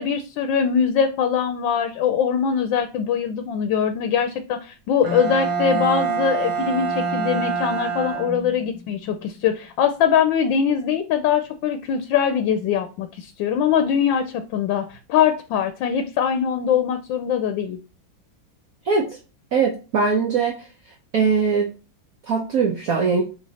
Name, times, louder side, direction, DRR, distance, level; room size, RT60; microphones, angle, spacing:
voice 1, 0.0-17.8, left 7 dB, 75° left, 8 dB, 1.3 m, -22 dB
Bowed string instrument, 5.0-8.8, right 5 dB, 75° right, 2.0 m, -25 dB
voice 2, 19.5-20.6 21.1-21.7 22.3-23.2, right 5 dB, 55° right, 1 dB, 1.2 m, -20 dB
7.5 x 3.0 x 4.1 m, 0.33 s
omnidirectional pair, 2.1 m